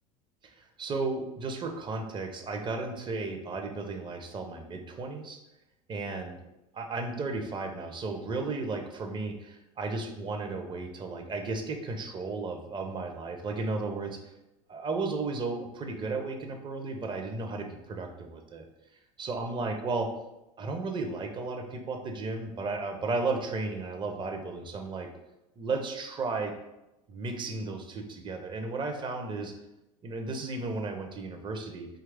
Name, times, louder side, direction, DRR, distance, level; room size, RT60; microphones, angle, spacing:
voice 1, 0.6-5.4 5.9-6.4 6.7-14.2 14.7-18.7 19.2-20.1 20.6-25.1 25.6-26.5 27.1-29.5 30.0-31.9, right 3 dB, 25° right, 4 dB, 0.5 m, -34 dB
2.9 x 2.3 x 3.3 m, 0.93 s
hypercardioid pair, 80°, 18 cm